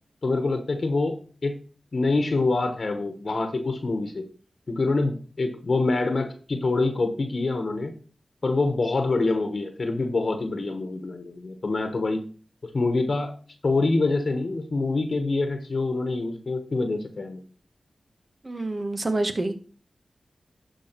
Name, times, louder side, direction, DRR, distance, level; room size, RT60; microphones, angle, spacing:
voice 1, 0.2-1.6 1.9-4.3 4.7-7.9 8.4-12.2 12.7-13.3 13.6-17.4, left 3 dB, 60° left, 7 dB, 1.2 m, -25 dB
voice 2, 18.4-19.5, right 2 dB, 45° right, 7 dB, 1.5 m, -27 dB
12.0 x 4.8 x 4.6 m, 0.40 s
cardioid pair, 45°, 0 cm